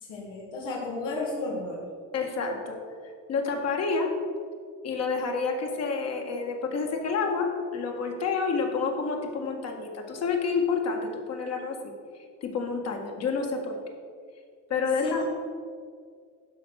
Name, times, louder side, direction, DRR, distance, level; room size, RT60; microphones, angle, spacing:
voice 1, 0.0-1.8 15.0-15.3, left 3 dB, 85° left, -4 dB, 2.1 m, -33 dB
voice 2, 2.1-2.8 3.3-4.1 4.8-11.8 12.4-13.8 14.7-15.3, left 4 dB, 55° left, 2 dB, 1.8 m, -29 dB
12.0 x 5.2 x 6.5 m, 2.1 s
cardioid pair, 120°, 31 cm